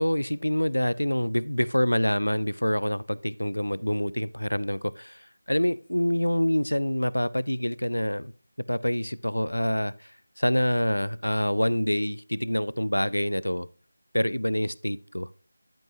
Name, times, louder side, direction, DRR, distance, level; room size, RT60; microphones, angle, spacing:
voice 1, 0.0-8.3 8.7-13.7 14.1-15.3, equal, 85° left, 0.4 m, -26 dB
12.0 x 5.3 x 2.8 m
figure-of-eight pair, 165°, 0 cm